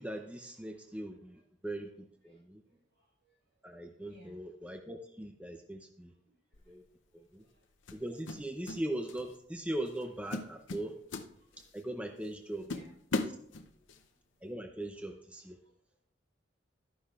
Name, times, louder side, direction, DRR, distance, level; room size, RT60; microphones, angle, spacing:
voice 1, 0.0-2.6 3.6-6.1 6.7-6.8 7.1-7.4 7.9-10.9 11.7-12.6 14.4-15.6, right 1 dB, 5° right, 4 dB, 0.5 m, -40 dB
voice 2, 2.2-3.4 4.0-4.5 6.2-6.4 6.6-6.8 7.3-7.7 8.6-8.7 10.8-10.9 11.5-11.7 12.0-12.2 12.6-13.0 13.7-14.1 15.6-15.7, right 1 dB, 65° right, -2 dB, 4.6 m, -61 dB
sound 1, 6.5-6.8 7.9-8.8 9.1-9.4 9.9-10.0 10.3-11.8 12.2-12.3 12.7-14.0, left 3 dB, 85° left, 0.7 m, -38 dB
12.5 x 9.9 x 2.4 m, 0.70 s
head